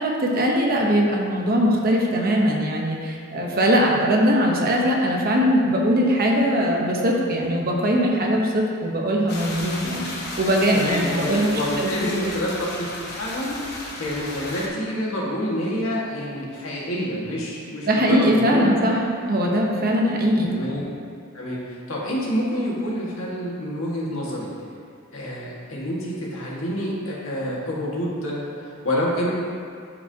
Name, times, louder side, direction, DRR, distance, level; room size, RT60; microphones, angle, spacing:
voice 1, 0.0-10.1 10.4-12.1 17.9-20.6, equal, 45° right, -1 dB, 1.0 m, -21 dB
sound 1, 9.3-14.7, left 2 dB, 50° left, 1.1 m, -34 dB
voice 2, 10.7-12.9 13.2-13.6 14.0-18.7 20.5-21.0 21.3-24.5 25.1-28.5 28.8-29.3, equal, 70° left, -5 dB, 1.7 m, -28 dB
13.0 x 4.8 x 2.8 m, 2.2 s
head